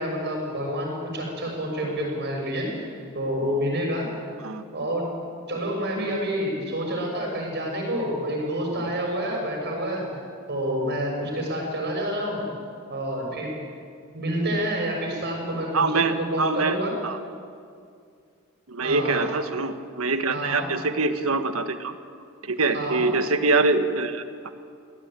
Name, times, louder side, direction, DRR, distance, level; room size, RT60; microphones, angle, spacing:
voice 1, 0.0-2.7 3.1-4.0 4.7-5.1 5.5-10.1 10.5-12.4 12.9-13.6 14.1-16.9 18.8-19.3 20.3-20.7 22.7-23.0, equal, 55° right, 0 dB, 6.5 m, -28 dB
voice 2, 15.7-16.8 17.0-17.2 18.7-21.9 22.4-24.2, right 3 dB, 80° right, 9 dB, 1.5 m, -24 dB
23.5 x 17.0 x 9.0 m, 2.3 s
head